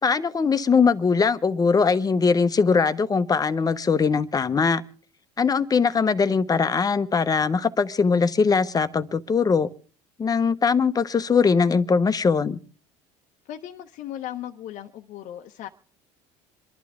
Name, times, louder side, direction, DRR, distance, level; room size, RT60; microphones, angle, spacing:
voice 1, 0.0-4.8 5.4-9.7 10.2-12.6, left 5 dB, 25° left, 1.0 m, -21 dB
voice 2, 13.4-15.7, left 11 dB, 60° left, 0.9 m, -37 dB
27.5 x 11.5 x 3.6 m
supercardioid pair, 80°, 15 cm